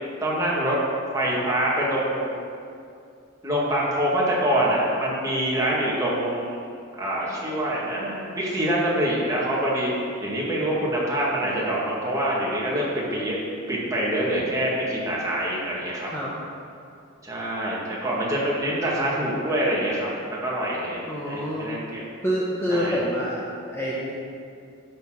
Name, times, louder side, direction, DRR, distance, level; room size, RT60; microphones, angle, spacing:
voice 1, 0.2-0.8 1.1-2.3 3.4-6.6 7.0-9.9 10.2-13.4 13.7-16.1 17.2-22.0 22.7-23.0, right 1 dB, 15° right, -6 dB, 2.0 m, -25 dB
voice 2, 21.0-21.7 22.2-24.1, equal, 10° left, -6 dB, 0.9 m, -27 dB
12.0 x 4.4 x 6.3 m, 2.5 s
head